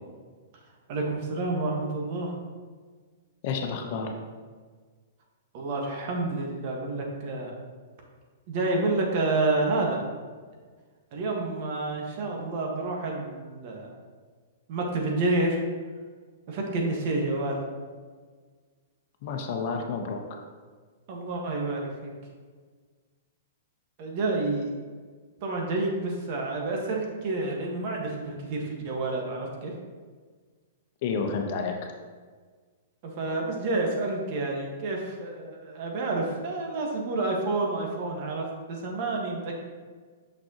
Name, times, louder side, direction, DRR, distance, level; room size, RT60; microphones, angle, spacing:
voice 1, 0.9-2.4 5.5-7.5 8.5-10.0 11.1-13.9 14.7-15.6 16.5-17.6 21.1-22.1 24.0-24.7 25.4-29.7 33.0-39.5, right 2 dB, 50° right, 0 dB, 1.5 m, -29 dB
voice 2, 3.4-4.1 19.2-20.4 31.0-31.9, left 5 dB, 50° left, 3 dB, 0.9 m, -30 dB
6.2 x 6.0 x 3.0 m, 1.5 s
hypercardioid pair, 130°, 0 cm